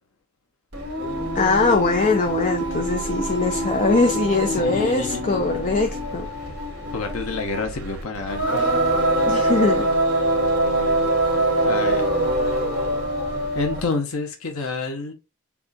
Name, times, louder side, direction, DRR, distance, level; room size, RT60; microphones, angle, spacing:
Singing, 0.7-13.9, right 1 dB, 55° right, 2.0 m, -24 dB
voice 1, 1.3-6.3 9.3-9.9, left 3 dB, 40° left, 0.5 m, -21 dB
voice 2, 4.6-5.3 6.9-9.0 11.6-12.1 13.5-15.1, left 3 dB, 85° left, 0.8 m, -29 dB
6.9 x 2.4 x 2.5 m
head